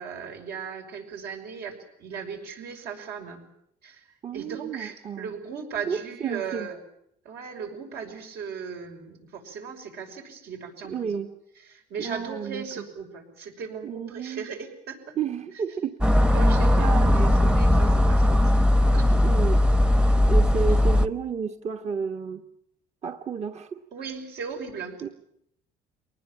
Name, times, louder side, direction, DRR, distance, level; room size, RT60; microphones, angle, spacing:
voice 1, 0.0-3.4 3.8-6.8 7.2-11.2 11.7-15.2 16.3-19.4 23.9-25.1, right 6 dB, 75° right, 3 dB, 6.0 m, -38 dB
voice 2, 4.2-5.3 5.9-6.7 10.9-11.3 12.0-12.9 13.8-14.4 15.2-16.3 16.8-17.5 19.1-19.6 20.2-22.4 23.0-23.8 25.0-25.1, right 6 dB, 40° right, 7 dB, 1.3 m, -32 dB
sound 1, 16.0-21.1, left 1 dB, 5° right, 0.9 m, -19 dB
24.0 x 19.5 x 8.9 m, 0.75 s
cardioid pair, 110°, 17 cm